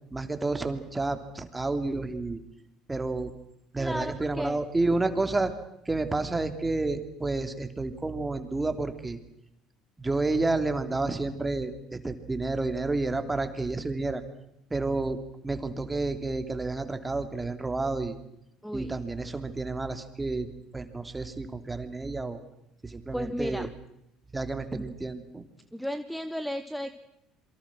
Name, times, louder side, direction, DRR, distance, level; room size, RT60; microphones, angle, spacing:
voice 1, 0.1-2.4 2.9-3.3 3.7-5.5 5.8-9.2 10.0-14.2 14.7-18.2 18.7-22.4 22.8-23.7 24.3-25.4, right 3 dB, 15° right, 8 dB, 3.0 m, -30 dB
voice 2, 3.8-4.6 18.6-18.9 23.1-23.7 24.7-24.8 25.7-26.9, equal, ahead, 12 dB, 1.3 m, -34 dB
27.5 x 23.5 x 6.3 m, 0.82 s
hypercardioid pair, 60°, 0 cm